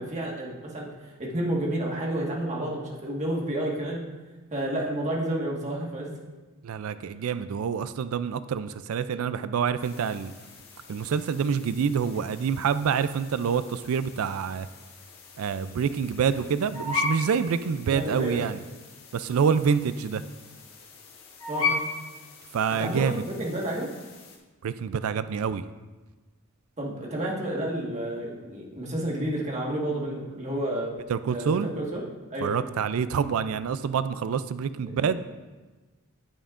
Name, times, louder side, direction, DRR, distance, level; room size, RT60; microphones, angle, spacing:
voice 1, 0.0-4.0 4.5-6.1 17.9-18.5 21.5-21.8 22.8-23.9 26.8-31.0 31.3-32.0 32.3-32.6 34.8-34.9, right 1 dB, 35° right, -3 dB, 1.6 m, -30 dB
voice 2, 6.6-10.3 10.9-14.7 15.4-18.6 19.1-20.2 22.5-23.2 24.6-25.6 31.1-31.7 32.4-35.3, right 6 dB, 85° right, 13 dB, 0.4 m, -27 dB
sound 1, 9.8-24.4, left 4 dB, 90° left, 1.4 m, -37 dB
9.4 x 8.8 x 2.5 m, 1.2 s
head